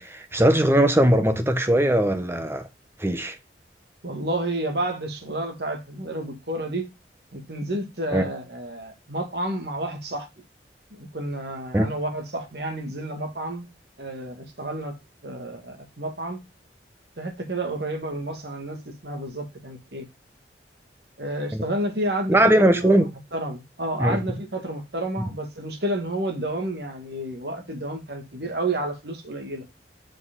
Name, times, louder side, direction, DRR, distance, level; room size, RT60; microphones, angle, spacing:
voice 1, 0.0-2.7 3.0-3.4 8.1-8.3 11.7-11.9 21.5-21.6 22.3-23.1 24.0-24.2, right 1 dB, 15° right, 0.9 m, -20 dB
voice 2, 4.0-6.9 7.3-10.3 10.9-13.7 14.0-14.9 15.2-16.4 17.2-20.1 21.2-29.7, right 1 dB, 65° right, 1.9 m, -30 dB
6.2 x 4.8 x 3.6 m
head